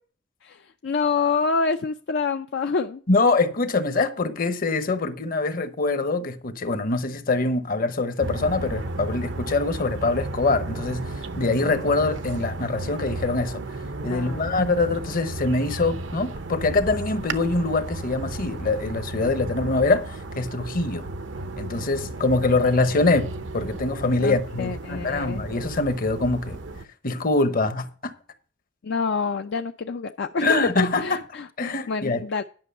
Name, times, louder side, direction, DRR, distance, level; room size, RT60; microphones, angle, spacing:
voice 1, 0.4-3.0 14.1-14.7 24.2-25.4 28.8-32.4, left 4 dB, 65° left, 0.5 m, -27 dB
voice 2, 3.1-13.6 14.0-21.1 21.6-26.6 27.0-28.1 30.4-31.2 31.6-32.2, left 3 dB, 50° left, 1.0 m, -24 dB
sound 1, 8.2-26.8, right 2 dB, 80° right, 0.8 m, -34 dB
10.5 x 6.1 x 5.4 m
head